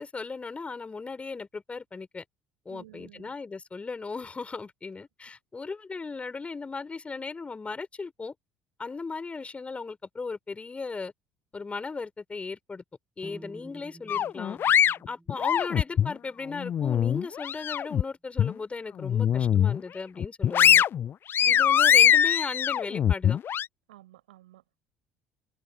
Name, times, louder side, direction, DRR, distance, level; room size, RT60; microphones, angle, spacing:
voice 1, 0.0-2.2 2.7-8.3 8.8-11.1 11.5-12.8 13.2-14.6 15.1-20.8 21.5-23.4, left 4 dB, 25° left, 5.7 m, -37 dB
voice 2, 2.7-3.3 21.4-21.6 23.9-24.8, right 15 dB, 70° right, 7.3 m, -52 dB
sound 1, 13.2-17.2, right 1 dB, 10° right, 4.6 m, -51 dB
sound 2, 14.1-16.1 16.6-18.0 18.4-18.5 19.0-19.8 20.2-23.7, left 9 dB, 40° left, 0.8 m, -22 dB
figure-of-eight pair, 55°, 5 cm